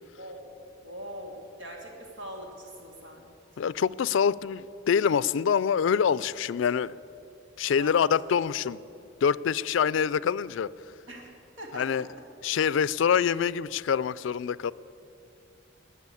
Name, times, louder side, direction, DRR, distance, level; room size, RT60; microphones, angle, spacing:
voice 1, 0.2-0.5 0.8-3.3 3.5-3.6 7.6-8.5 11.1-12.1, equal, 80° right, 0 dB, 2.9 m, -42 dB
voice 2, 3.6-7.0 7.6-8.8 9.2-10.7 11.7-12.1 12.4-14.7, left 7 dB, 75° left, 20 dB, 0.3 m, -25 dB
20.0 x 7.1 x 8.5 m, 2.8 s
head